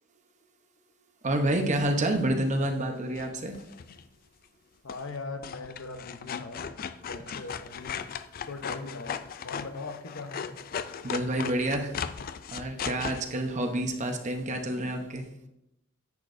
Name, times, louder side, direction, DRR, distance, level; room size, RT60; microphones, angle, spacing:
voice 1, 1.2-3.6 11.0-12.0 12.5-15.3, right 1 dB, 35° right, 5 dB, 0.9 m, -28 dB
sound 1, 3.2-4.0 4.9-5.2 5.4-13.2, left 7 dB, 45° left, 0.4 m, -37 dB
voice 2, 4.8-6.6 7.0-8.0 8.5-9.2 9.4-10.6, left 3 dB, 70° left, 7 dB, 0.9 m, -40 dB
10.5 x 8.3 x 2.6 m, 0.86 s
head